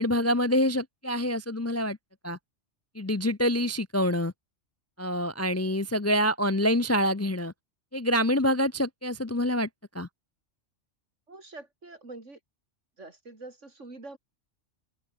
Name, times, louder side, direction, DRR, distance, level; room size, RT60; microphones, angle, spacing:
voice 1, 0.0-2.0 2.2-2.4 3.0-4.3 5.0-7.5 7.9-9.7 9.9-10.1, equal, 20° left, 0.4 m, -26 dB
voice 2, 11.3-12.4 13.0-14.2, right 2 dB, 85° right, 4.4 m, -45 dB
open air
omnidirectional pair, 1.2 m